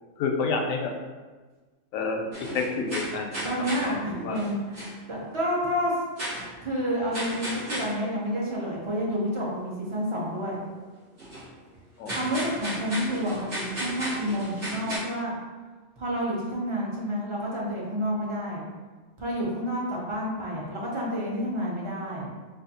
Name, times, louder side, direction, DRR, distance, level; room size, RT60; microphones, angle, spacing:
voice 1, 0.2-0.9 1.9-3.3 3.6-4.5 12.0-12.2, left 4 dB, 80° left, 2 dB, 1.0 m, -29 dB
sound 1, 2.3-3.9 4.3-4.9 6.2-6.5 7.1-7.9 11.2-11.4 12.1-15.0, equal, 70° right, 2.0 m, -34 dB
voice 2, 3.4-5.9 6.6-10.6 12.1-15.3 16.0-18.6 19.2-22.3, equal, 35° right, -4 dB, 0.5 m, -29 dB
4.2 x 2.5 x 2.7 m, 1.3 s
omnidirectional pair, 1.4 m